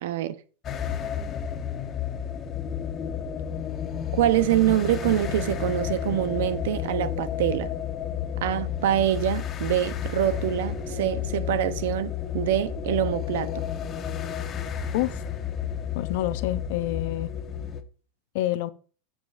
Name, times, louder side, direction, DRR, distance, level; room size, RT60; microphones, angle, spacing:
voice 1, 0.0-0.4 4.1-7.7 8.4-13.5, right 12 dB, 75° right, 0.7 m, -25 dB
sound 1, 0.6-17.8, left 8 dB, 30° left, 1.0 m, -31 dB
voice 2, 15.9-17.3 18.3-18.7, left 15 dB, 65° left, 0.6 m, -27 dB
14.5 x 5.0 x 2.5 m
supercardioid pair, 130°, 0 cm